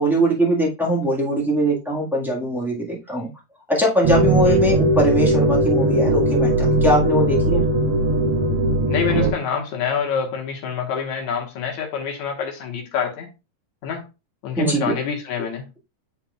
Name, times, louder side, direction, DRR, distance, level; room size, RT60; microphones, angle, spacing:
voice 1, 0.0-3.3 3.7-7.6 14.6-14.9, right 1 dB, ahead, 0.5 m, -21 dB
sound 1, 4.0-9.3, right 1 dB, 85° right, 2.5 m, -19 dB
voice 2, 8.9-13.3 13.8-14.1 14.4-15.6, left 7 dB, 75° left, 2.5 m, -26 dB
10.5 x 4.1 x 2.4 m
omnidirectional pair, 3.4 m